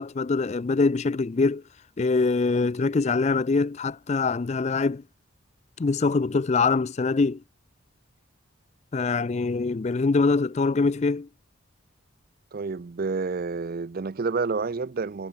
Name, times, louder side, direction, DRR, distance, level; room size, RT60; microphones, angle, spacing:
voice 1, 0.0-1.6 2.0-5.0 5.8-7.4 8.9-11.3, left 4 dB, 30° left, 0.4 m, -24 dB
voice 2, 12.5-15.3, right 4 dB, 45° right, 0.4 m, -29 dB
head